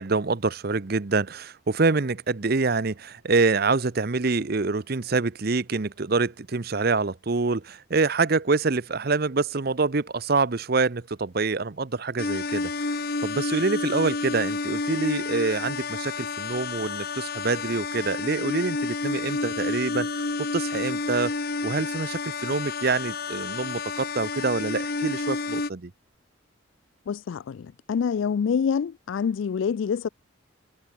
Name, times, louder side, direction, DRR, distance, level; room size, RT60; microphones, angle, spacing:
voice 1, 0.0-21.3 21.6-25.9, right 3 dB, 50° right, 0.7 m, -26 dB
sound 1, 12.2-25.7, left 3 dB, 50° left, 1.2 m, -30 dB
voice 2, 27.1-30.1, left 6 dB, 70° left, 0.3 m, -26 dB
head